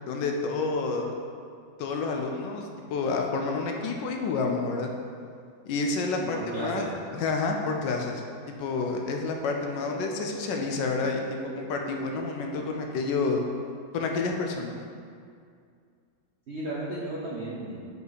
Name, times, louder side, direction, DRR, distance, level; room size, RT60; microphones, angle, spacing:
voice 1, 0.1-1.1 1.8-4.9 5.6-6.9 7.1-8.2 8.6-11.2 11.6-13.4 13.9-14.8, left 4 dB, 75° left, 2 dB, 1.2 m, -29 dB
voice 2, 6.2-6.9 16.5-17.8, right 2 dB, 65° right, -6 dB, 0.6 m, -34 dB
sound 1, 9.8-13.3, right 1 dB, 55° left, 0.8 m, -42 dB
5.2 x 4.9 x 4.0 m, 2.3 s
omnidirectional pair, 2.1 m